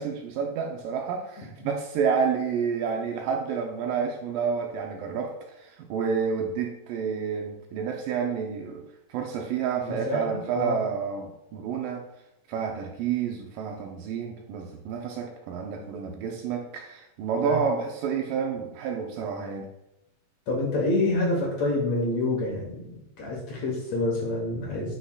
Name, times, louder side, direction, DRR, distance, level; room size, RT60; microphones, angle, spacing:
voice 1, 0.0-8.8 9.1-12.1 12.5-19.7, right 6 dB, 80° right, 2 dB, 2.1 m, -29 dB
voice 2, 9.8-10.8 17.4-17.6 20.5-25.0, left 2 dB, 65° left, -2 dB, 1.8 m, -27 dB
8.1 x 6.0 x 2.3 m, 0.85 s
omnidirectional pair, 4.2 m